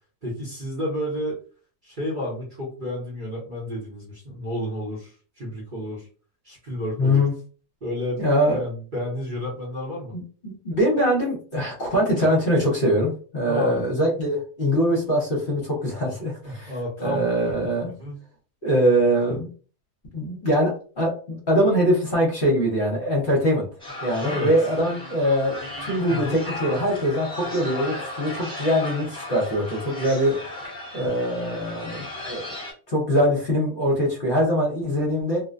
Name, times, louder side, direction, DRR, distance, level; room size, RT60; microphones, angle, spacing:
voice 1, 0.2-1.4 1.8-6.1 6.4-7.2 7.8-8.2 8.5-10.1 13.5-13.8 16.4-17.3 17.8-18.2 24.2-24.5 26.1-26.4, left 1 dB, 40° right, -4 dB, 0.9 m, -31 dB
voice 2, 7.0-7.3 8.2-8.6 10.1-16.7 17.0-17.9 18.6-19.5 20.1-23.7 24.0-30.6 30.9-32.5 32.9-35.4, equal, 45° left, -3 dB, 0.9 m, -23 dB
sound 1, 23.8-32.7, left 1 dB, 5° left, 0.9 m, -35 dB
2.5 x 2.1 x 2.4 m, 0.39 s
omnidirectional pair, 1.5 m